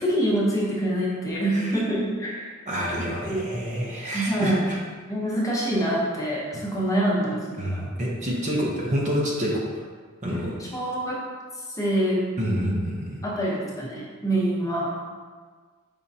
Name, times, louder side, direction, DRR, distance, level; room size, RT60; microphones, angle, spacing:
voice 1, 0.0-2.5 3.3-3.4 4.0-4.6 5.1-7.9 10.7-11.2 11.8-12.2 13.2-14.9, right 1 dB, 15° left, -5 dB, 0.8 m, -25 dB
voice 2, 1.5-1.8 2.7-4.8 7.6-9.6 10.2-10.5 12.4-13.2, equal, 35° right, -3 dB, 0.7 m, -27 dB
5.1 x 3.5 x 2.7 m, 1.5 s
head